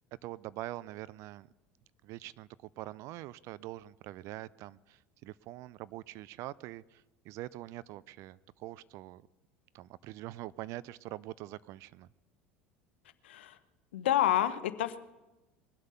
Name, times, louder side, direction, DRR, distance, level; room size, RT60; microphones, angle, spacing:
voice 1, 0.2-1.5 2.0-9.2 9.7-12.1, right 16 dB, 55° right, 20 dB, 0.4 m, -44 dB
voice 2, 13.2-13.6 13.9-15.0, left 12 dB, 80° left, 13 dB, 0.8 m, -29 dB
21.5 x 8.1 x 5.6 m, 1.1 s
hypercardioid pair, 80°, 6 cm